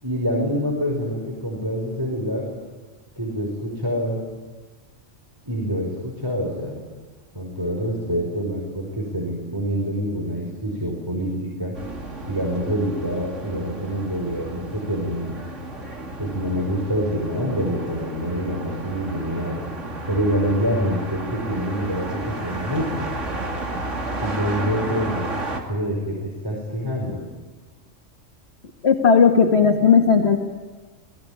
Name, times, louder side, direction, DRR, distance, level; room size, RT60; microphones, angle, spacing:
voice 1, 0.0-2.5 3.2-4.2 5.5-6.8 7.3-11.7 12.3-15.3 16.2-19.6 20.1-23.1 24.2-25.3 25.7-27.2, equal, 15° right, -2 dB, 5.4 m, -26 dB
sound 1, 11.7-25.6, right 2 dB, 70° right, 3.1 m, -32 dB
voice 2, 28.8-30.4, left 6 dB, 55° left, 1 dB, 2.0 m, -15 dB
27.5 x 20.0 x 8.9 m, 1.3 s
omnidirectional pair, 1.3 m